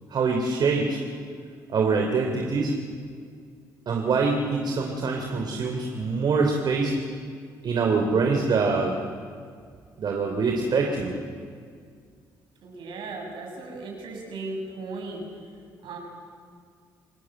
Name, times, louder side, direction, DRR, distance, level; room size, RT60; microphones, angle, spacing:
voice 1, 0.1-1.0 1.7-2.7 3.9-6.9 7.6-9.0 10.0-11.1, right 4 dB, 60° right, 2 dB, 3.3 m, -24 dB
voice 2, 12.6-15.2 15.8-16.0, right 3 dB, 75° right, 1 dB, 7.7 m, -36 dB
28.5 x 18.0 x 7.9 m, 2.1 s
supercardioid pair, 60°, 9 cm